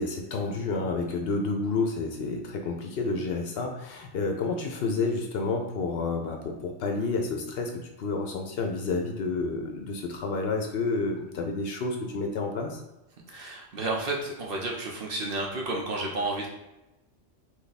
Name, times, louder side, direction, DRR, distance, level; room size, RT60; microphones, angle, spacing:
voice 1, 0.0-12.8, left 3 dB, 65° left, 3 dB, 0.7 m, -30 dB
voice 2, 13.3-16.5, right 2 dB, 55° right, -1 dB, 0.9 m, -31 dB
3.4 x 2.9 x 4.0 m, 0.96 s
omnidirectional pair, 1.2 m